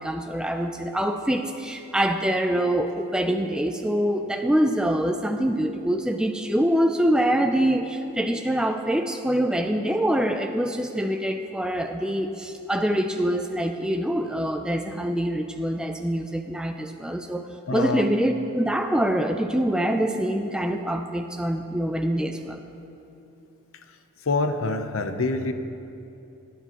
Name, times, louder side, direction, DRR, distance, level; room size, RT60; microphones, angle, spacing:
voice 1, 0.0-22.6, right 1 dB, 5° right, 5 dB, 0.3 m, -25 dB
voice 2, 17.7-18.1 24.3-25.5, left 3 dB, 70° left, 8 dB, 0.7 m, -25 dB
16.5 x 10.5 x 3.0 m, 2.8 s
head